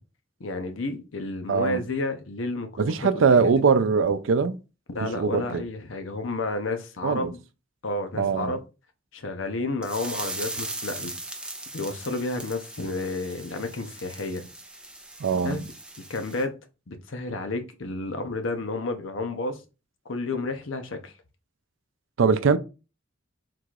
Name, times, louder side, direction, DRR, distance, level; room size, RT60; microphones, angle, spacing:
voice 1, 0.4-3.0 4.9-7.4 7.8-8.6 9.1-11.1 11.7-14.5 15.4-15.6 16.1-16.5 16.9-19.6 20.1-21.1, left 2 dB, 85° left, 0.7 m, -31 dB
voice 2, 1.5-1.8 2.8-4.6 5.0-5.6 7.0-7.3 8.1-8.5 15.2-15.6 22.2-22.6, right 5 dB, 80° right, 0.4 m, -22 dB
sound 1, 9.8-16.4, right 2 dB, 5° right, 0.6 m, -38 dB
3.8 x 2.4 x 4.6 m
head